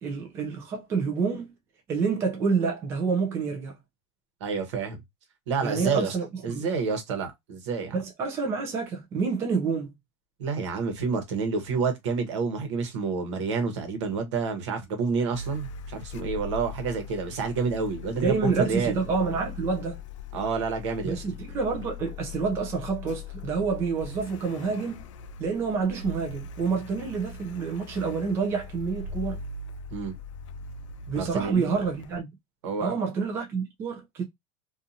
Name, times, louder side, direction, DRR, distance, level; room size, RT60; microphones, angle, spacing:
voice 1, 0.0-1.5 1.9-3.8 5.6-6.7 7.9-9.9 18.2-20.0 21.0-25.0 25.4-29.4 31.1-32.3 32.8-34.2, right 5 dB, 15° right, 0.4 m, -28 dB
voice 2, 4.4-5.0 5.5-6.2 6.4-8.0 10.4-19.0 20.3-21.2 29.9-30.2 31.1-31.8 32.6-33.0, right 5 dB, 70° right, 1.0 m, -29 dB
Car, 15.3-32.2, left 5 dB, 85° left, 0.4 m, -40 dB
2.7 x 2.4 x 2.6 m
supercardioid pair, 175°, 16 cm